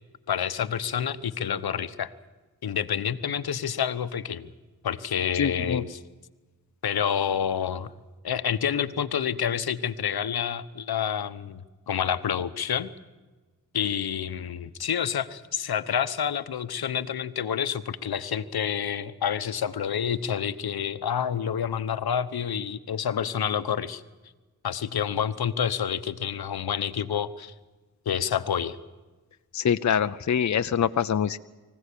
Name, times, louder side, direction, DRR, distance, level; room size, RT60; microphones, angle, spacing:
voice 1, 0.3-2.1 2.6-4.5 4.8-6.0 6.8-7.9 8.2-11.6 11.9-12.9 13.7-24.0 24.6-27.5 28.1-28.8, left 8 dB, 80° left, 13 dB, 1.1 m, -28 dB
voice 2, 5.3-5.8 29.5-31.4, left 8 dB, 50° left, 11 dB, 0.7 m, -24 dB
24.5 x 16.0 x 8.6 m, 1.3 s
cardioid pair, 65°, 37 cm